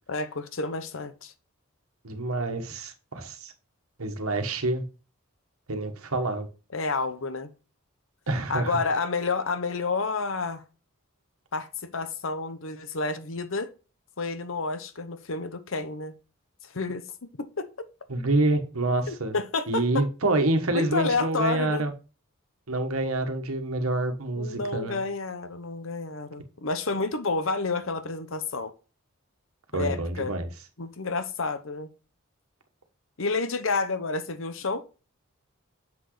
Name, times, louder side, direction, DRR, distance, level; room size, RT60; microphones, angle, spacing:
voice 1, 0.1-1.3 6.7-7.5 8.5-10.6 11.5-13.7 14.2-16.1 16.6-17.9 19.1-20.0 20.7-21.8 24.4-28.7 29.7-30.3 30.8-31.9 33.2-34.8, left 3 dB, 65° left, 0.9 m, -30 dB
voice 2, 2.0-3.5 4.0-4.8 5.7-6.5 8.3-8.8 18.1-19.3 19.7-21.9 22.7-25.0 29.7-30.5, right 2 dB, 85° right, 1.4 m, -27 dB
7.1 x 6.2 x 3.2 m
head